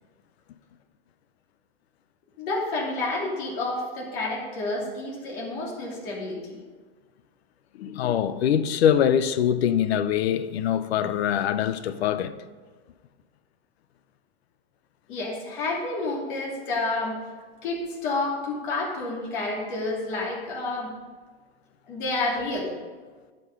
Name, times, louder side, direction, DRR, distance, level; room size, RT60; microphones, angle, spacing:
voice 1, 2.4-6.6 15.1-17.2 17.6-20.9 21.9-22.7, left 2 dB, 55° left, 3.2 m, -29 dB
voice 2, 7.7-12.3, left 9 dB, 90° left, 0.8 m, -23 dB
13.0 x 5.5 x 5.4 m
supercardioid pair, 155°, 31 cm